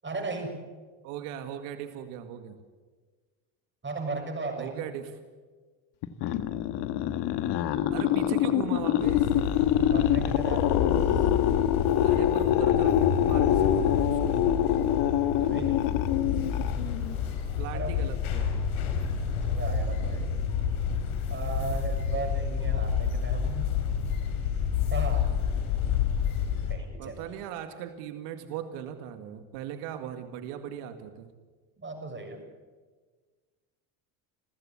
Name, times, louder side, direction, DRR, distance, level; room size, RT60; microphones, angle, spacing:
voice 1, 0.0-0.6 3.8-4.9 9.8-11.3 15.4-15.8 17.7-18.0 19.4-20.3 21.3-23.7 24.9-25.4 26.7-27.4 31.8-32.4, right 3 dB, 25° right, 4 dB, 7.1 m, -36 dB
voice 2, 1.0-2.6 4.6-5.2 7.9-9.3 12.0-14.4 15.3-15.8 17.6-18.6 27.0-31.3, right 10 dB, 80° right, 8 dB, 2.1 m, -39 dB
sound 1, 6.0-17.1, left 11 dB, 70° left, 1.6 m, -25 dB
sound 2, 9.0-26.7, left 7 dB, 90° left, 4.1 m, -29 dB
27.0 x 15.5 x 8.6 m, 1.4 s
supercardioid pair, 85°, 42 cm